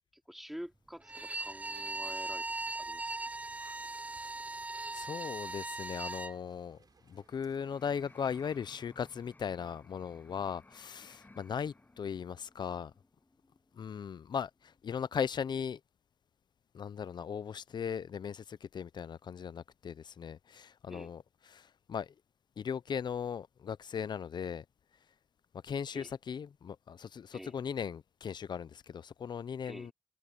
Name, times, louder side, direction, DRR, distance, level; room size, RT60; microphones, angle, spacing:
voice 1, 0.3-3.2 20.9-21.1 25.9-26.1 27.3-27.5 29.6-29.9, equal, 5° right, 2.5 m, -47 dB
Bowed string instrument, 1.0-6.4, right 2 dB, 20° right, 0.5 m, -39 dB
sound 1, 1.4-8.6, right 5 dB, 65° right, 6.9 m, -66 dB
voice 2, 4.9-6.8 7.1-12.9 13.7-15.8 16.7-22.1 22.6-24.6 25.6-29.9, left 7 dB, 90° left, 0.5 m, -38 dB
sound 2, 6.7-14.8 15.1-15.2, left 2 dB, 25° left, 7.7 m, -60 dB
wide cardioid pair, 135°, 7 cm